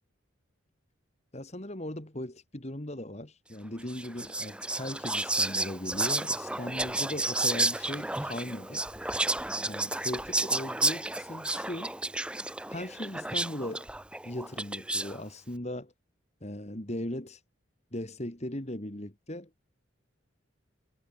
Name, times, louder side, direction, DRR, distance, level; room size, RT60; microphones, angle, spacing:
voice 1, 1.3-8.8 9.6-11.9 12.7-13.9 14.2-15.9 16.4-17.4 17.9-19.5, left 1 dB, 35° left, 2.6 m, -38 dB
Whispering, 3.9-15.2, right 2 dB, 5° right, 0.6 m, -31 dB
head